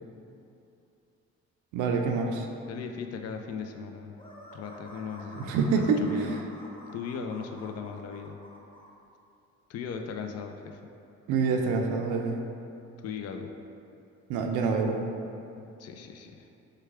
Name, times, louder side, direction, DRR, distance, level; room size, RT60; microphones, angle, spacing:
voice 1, 1.7-2.5 5.5-6.4 11.3-12.4 14.3-15.0, right 4 dB, 90° right, 3 dB, 0.5 m, -26 dB
voice 2, 2.7-4.2 4.5-6.4 6.9-8.4 9.7-10.8 13.0-13.5 15.6-16.5, left 6 dB, 55° left, 4 dB, 0.4 m, -38 dB
sound 1, 4.1-8.9, equal, 15° left, 0.7 m, -49 dB
4.7 x 2.2 x 4.6 m, 2.7 s
cardioid pair, 90°, 30 cm